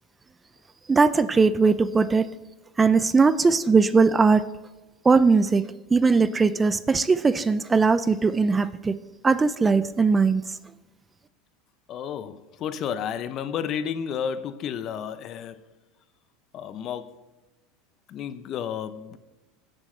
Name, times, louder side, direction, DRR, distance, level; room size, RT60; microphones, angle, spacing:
voice 1, 0.9-2.3 2.8-4.5 5.0-5.6 5.9-8.9 9.2-10.4, right 4 dB, 20° right, 0.4 m, -20 dB
voice 2, 11.9-15.6 16.5-17.2 18.1-19.2, left 8 dB, 45° left, 0.8 m, -32 dB
16.5 x 7.5 x 3.3 m
supercardioid pair, 110°, 0 cm